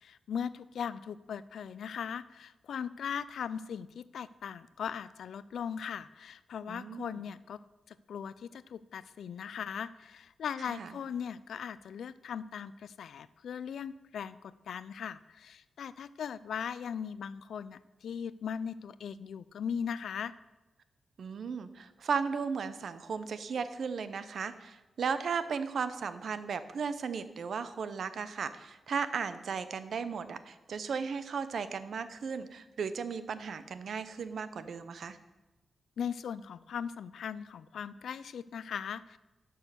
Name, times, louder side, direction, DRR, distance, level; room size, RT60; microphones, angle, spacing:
voice 1, 0.0-7.6 7.9-20.3 36.0-39.2, left 7 dB, 90° left, 16 dB, 0.4 m, -39 dB
voice 2, 6.7-7.2 10.7-10.9 21.2-35.2, right 6 dB, 70° right, 12 dB, 0.7 m, -36 dB
11.5 x 6.3 x 6.7 m, 1.1 s
wide cardioid pair, 110°, 0 cm